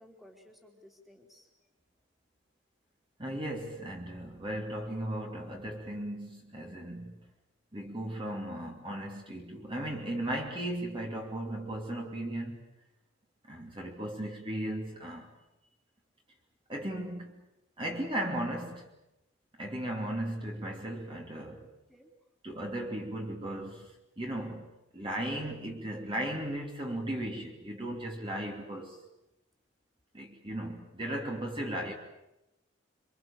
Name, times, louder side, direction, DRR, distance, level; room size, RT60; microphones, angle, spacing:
voice 1, 0.0-1.7 21.9-22.3, left 1 dB, ahead, 3.2 m, -57 dB
voice 2, 3.2-7.3 7.7-12.7 13.4-15.3 16.7-17.5 17.8-18.9 19.6-21.7 22.4-29.0 30.1-31.9, right 1 dB, 25° right, 2.8 m, -36 dB
27.0 x 25.0 x 7.3 m
head